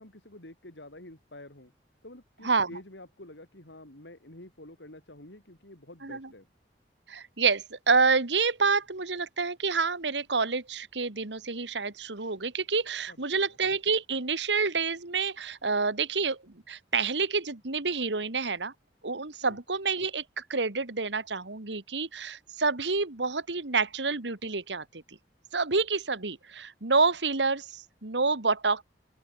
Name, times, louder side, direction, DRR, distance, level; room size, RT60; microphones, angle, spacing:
voice 1, 0.0-1.7 2.0-6.5 13.1-13.4 19.5-19.6, left 1 dB, 90° left, 5.0 m, -48 dB
voice 2, 7.1-18.7 19.0-25.0 25.5-28.8, right 4 dB, 90° right, 2.0 m, -28 dB
open air
head